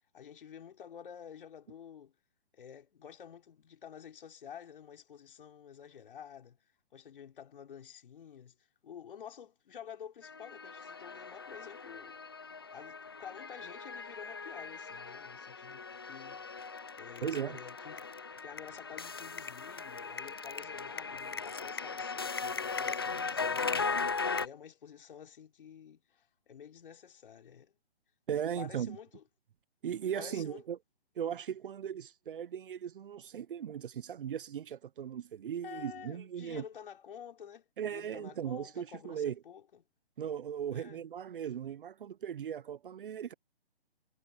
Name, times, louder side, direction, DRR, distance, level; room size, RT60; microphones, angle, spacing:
voice 1, 0.1-2.1 2.5-6.6 6.9-8.5 8.8-16.7 16.9-27.8 28.6-29.2 30.1-30.6 35.6-39.8 40.7-41.0, left 8 dB, 55° left, 4.8 m, -50 dB
sound 1, 10.2-24.5, left 4 dB, 25° left, 0.3 m, -38 dB
voice 2, 17.2-17.6 28.3-29.0 29.8-30.8 31.2-36.6 37.8-39.3 40.2-43.3, right 9 dB, 55° right, 0.7 m, -37 dB
hypercardioid pair, 150°, 32 cm